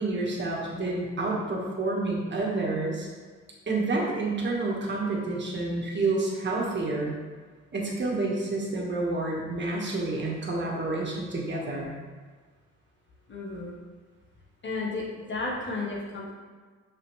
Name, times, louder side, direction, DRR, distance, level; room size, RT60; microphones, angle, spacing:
voice 1, 0.0-3.1 3.7-7.2 7.7-11.9, right 2 dB, 35° right, -2 dB, 1.6 m, -29 dB
voice 2, 13.3-13.8 14.6-16.3, left 3 dB, 40° left, -4 dB, 1.4 m, -33 dB
5.8 x 5.6 x 3.3 m, 1.5 s
cardioid pair, 90°, 30 cm